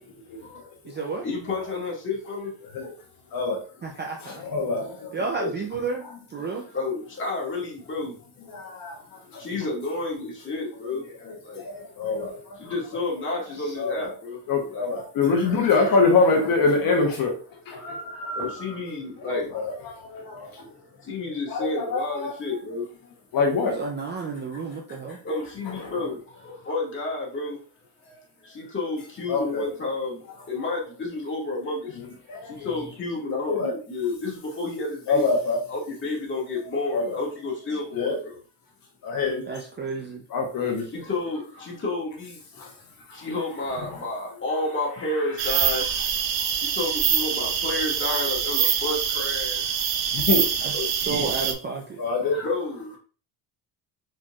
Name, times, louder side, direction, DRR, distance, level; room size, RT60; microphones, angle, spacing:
voice 1, 0.3-0.7 1.0-2.5 5.4-5.5 6.7-8.2 9.2-11.1 11.4-11.6 12.5-14.4 14.7-16.0 17.8-19.5 20.2-22.9 25.2-27.6 28.0-32.0 32.4-35.2 35.7-38.4 40.9-42.4 43.1-49.7 50.7-51.2 52.2-53.0, left 2 dB, 25° left, -3 dB, 1.8 m, -31 dB
voice 2, 0.8-1.3 3.8-4.4 5.1-6.7 13.6-13.8 23.6-25.2 39.5-40.2 50.6-52.0, right 4 dB, 25° right, 1 dB, 0.5 m, -32 dB
voice 3, 3.3-3.6 4.2-5.1 8.5-9.0 9.3-9.5 11.2-12.7 13.8-14.1 14.5-17.3 17.7-18.0 18.2-18.3 19.3-20.7 21.5-22.3 23.3-23.7 25.8-25.9 29.3-29.7 32.3-32.7 33.5-33.7 35.1-35.6 36.9-37.1 37.9-38.2 39.0-39.5 40.3-40.9 42.6-42.7 50.1-50.4 51.1-51.2 52.0-52.4, left 4 dB, 50° left, 2 dB, 1.0 m, -25 dB
sound 1, 45.4-51.5, right 8 dB, 55° right, 0.8 m, -25 dB
4.4 x 4.4 x 2.4 m, 0.39 s
cardioid pair, 150°, 46 cm